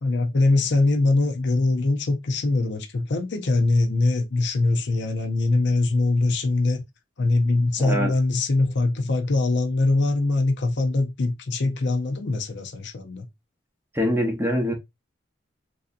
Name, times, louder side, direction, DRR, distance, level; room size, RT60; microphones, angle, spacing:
voice 1, 0.0-6.8 7.2-13.3, left 2 dB, 60° left, 0.6 m, -22 dB
voice 2, 7.8-8.1 13.9-14.7, equal, 10° right, 0.7 m, -24 dB
3.3 x 2.7 x 2.5 m
head